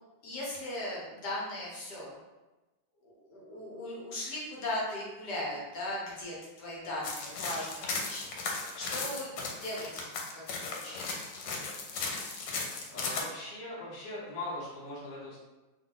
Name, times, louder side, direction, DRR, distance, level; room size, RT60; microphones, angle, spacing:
voice 1, 0.2-2.1 3.0-10.1 10.3-11.2, left 1 dB, 70° left, -5 dB, 1.4 m, -38 dB
sound 1, 7.0-13.2, left 4 dB, 90° left, 1.3 m, -36 dB
voice 2, 12.7-15.4, left 2 dB, 35° left, -7 dB, 0.8 m, -40 dB
3.3 x 2.2 x 3.7 m, 1.1 s
omnidirectional pair, 2.0 m